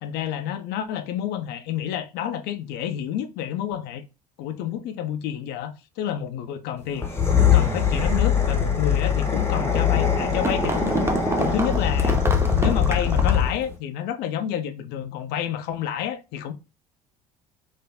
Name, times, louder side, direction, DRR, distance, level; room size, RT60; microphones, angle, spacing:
voice 1, 0.0-4.0 4.4-7.1 7.5-12.2 12.6-16.5, left 10 dB, 60° left, 0.5 m, -29 dB
sound 1, 6.9-13.7, left 7 dB, 15° left, 0.9 m, -22 dB
sound 2, 10.3-13.5, right 2 dB, 15° right, 0.6 m, -28 dB
3.2 x 2.5 x 2.3 m
hypercardioid pair, 65°, 19 cm